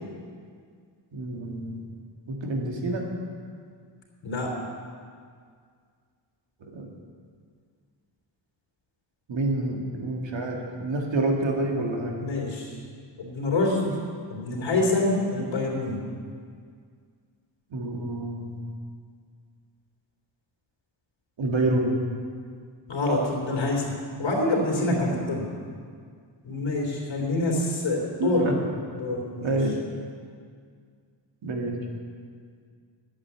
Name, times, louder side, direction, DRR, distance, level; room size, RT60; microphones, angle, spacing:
voice 1, 1.1-1.8 2.3-3.1 6.6-6.9 9.3-12.2 17.7-18.6 21.4-22.0 24.8-25.0 27.2-27.3 28.2-28.5 29.4-29.8 31.4-31.8, right 2 dB, 65° right, 0 dB, 2.1 m, -28 dB
voice 2, 12.2-12.7 13.2-13.9 14.3-16.0 22.9-23.9 24.2-25.5 26.4-28.5 29.0-29.6, left 2 dB, 70° left, -1 dB, 3.4 m, -26 dB
11.0 x 8.7 x 8.5 m, 2.1 s
wide cardioid pair, 150°, 48 cm